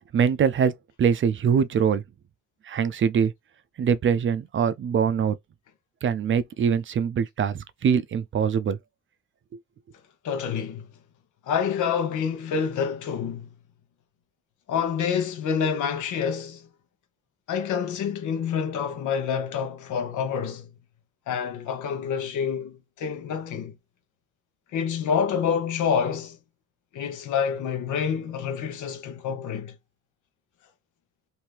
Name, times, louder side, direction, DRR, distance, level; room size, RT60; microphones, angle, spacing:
voice 1, 0.1-0.7 1.0-2.0 2.7-3.3 3.8-5.4 6.0-8.8, right 7 dB, 40° right, 0.4 m, -23 dB
voice 2, 10.2-10.9 11.5-13.5 14.7-16.7 17.5-20.7 21.3-23.8 24.7-26.4 26.9-29.7, left 7 dB, 80° left, 1.0 m, -27 dB
2.9 x 2.7 x 3.3 m
cardioid pair, 90°, 30 cm